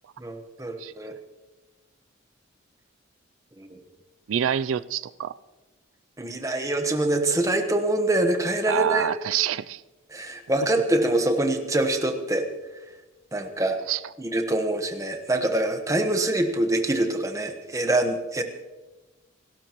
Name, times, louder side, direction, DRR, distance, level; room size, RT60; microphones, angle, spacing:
voice 1, 0.2-1.1 3.6-3.8 6.2-9.1 10.1-12.5 13.3-13.8 14.2-18.4, right 1 dB, 15° right, 1.1 m, -25 dB
voice 2, 4.3-5.3 8.7-9.8 13.9-14.0, right 9 dB, 90° right, 0.4 m, -26 dB
29.0 x 12.5 x 3.0 m
head